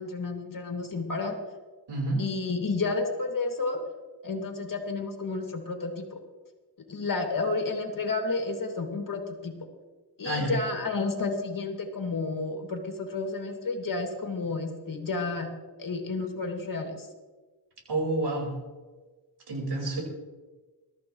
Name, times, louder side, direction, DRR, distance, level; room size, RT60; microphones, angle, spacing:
voice 1, 0.0-1.3 2.2-3.8 4.2-6.2 6.9-9.5 10.2-15.5 15.8-17.1, left 3 dB, 55° left, 3 dB, 2.6 m, -31 dB
voice 2, 1.9-2.2 10.2-10.5 17.9-18.5 19.5-20.0, right 2 dB, 85° right, -1 dB, 5.0 m, -28 dB
22.0 x 13.5 x 3.2 m, 1.3 s
wide cardioid pair, 95°, 39 cm